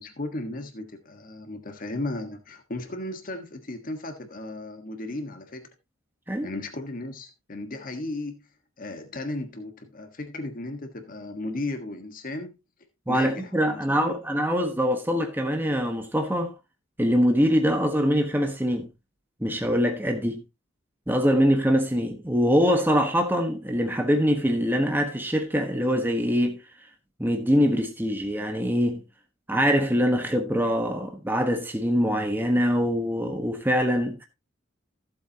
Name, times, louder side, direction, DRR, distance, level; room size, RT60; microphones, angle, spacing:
voice 1, 0.0-5.7 6.4-8.5 8.8-12.5 13.1-14.2, left 2 dB, 45° left, 1.5 m, -35 dB
voice 2, 13.1-16.5 17.0-18.9 19.4-20.4 21.1-26.6 27.2-29.0 29.5-34.2, equal, 10° right, 1.3 m, -23 dB
15.5 x 7.7 x 2.9 m
head